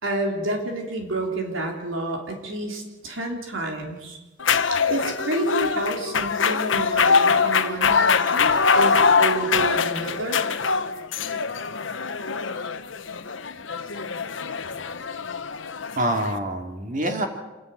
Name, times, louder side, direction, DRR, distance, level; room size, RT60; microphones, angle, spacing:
voice 1, 0.0-4.2 4.7-10.4, right 1 dB, 85° right, 2 dB, 3.9 m, -29 dB
sound 1, 4.4-16.4, left 5 dB, 75° left, 1.1 m, -23 dB
voice 2, 11.5-12.0 16.0-17.3, right 1 dB, 40° right, 4 dB, 2.8 m, -27 dB
27.0 x 11.5 x 9.4 m, 1.1 s
head